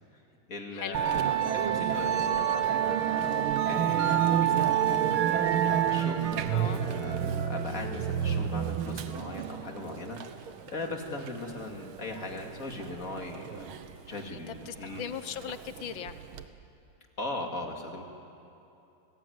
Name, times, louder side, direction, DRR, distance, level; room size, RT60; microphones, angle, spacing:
voice 1, 0.5-3.0 3.7-5.0 5.2-10.2 10.7-13.6 14.1-15.0 17.2-18.1, left 2 dB, 40° left, 2 dB, 2.7 m, -39 dB
Musical instrument, 0.9-16.4, right 9 dB, 85° right, 1.9 m, -29 dB
voice 2, 6.5-6.8 14.3-16.2, left 9 dB, 70° left, 11 dB, 1.6 m, -38 dB
29.0 x 19.5 x 9.5 m, 2.8 s
omnidirectional pair, 2.3 m